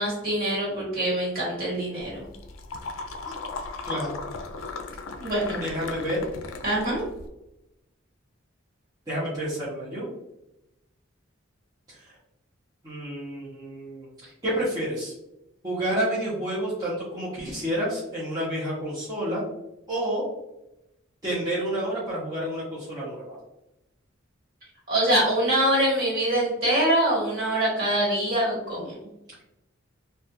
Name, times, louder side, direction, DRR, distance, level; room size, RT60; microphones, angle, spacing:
voice 1, 0.0-2.3 5.2-5.6 6.6-7.0 24.9-28.9, right 1 dB, 45° right, -5 dB, 1.4 m, -24 dB
sound 1, 2.0-7.3, left 3 dB, 70° left, 0.3 m, -37 dB
voice 2, 3.8-4.2 5.6-6.2 9.1-10.1 11.9-12.2 12.8-15.1 15.6-19.4 19.9-20.2 21.2-23.4, right 1 dB, 20° right, -10 dB, 0.6 m, -29 dB
2.3 x 2.1 x 2.7 m, 0.91 s
head